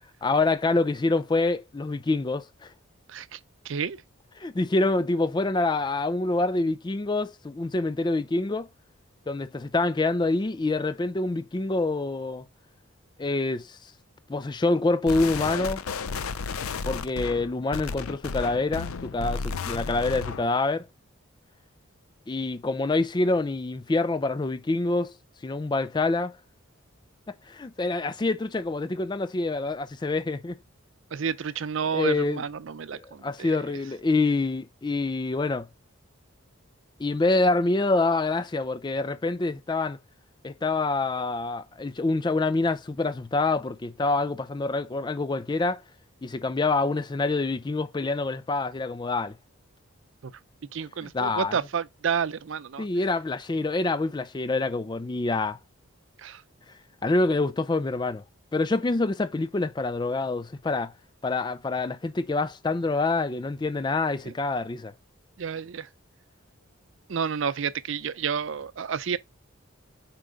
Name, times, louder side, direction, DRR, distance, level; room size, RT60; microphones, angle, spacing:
voice 1, 0.2-2.7 4.4-8.7 9.3-12.4 13.2-13.8 14.3-15.8 16.8-20.9 22.3-25.1 25.4-26.4 27.5-30.6 31.9-32.4 33.0-35.7 37.0-40.0 40.4-45.8 46.2-49.4 51.0-51.6 52.8-55.6 57.0-58.2 58.5-60.9 61.2-64.9, left 3 dB, 20° left, 0.4 m, -26 dB
voice 2, 3.1-3.4 3.6-4.0 31.1-33.6 50.2-50.3 50.7-52.9 56.2-56.4 64.2-64.3 65.4-65.9 67.1-69.2, right 6 dB, 65° right, 0.5 m, -30 dB
sound 1, 15.1-20.5, left 5 dB, 90° left, 0.5 m, -33 dB
4.6 x 4.5 x 5.0 m
head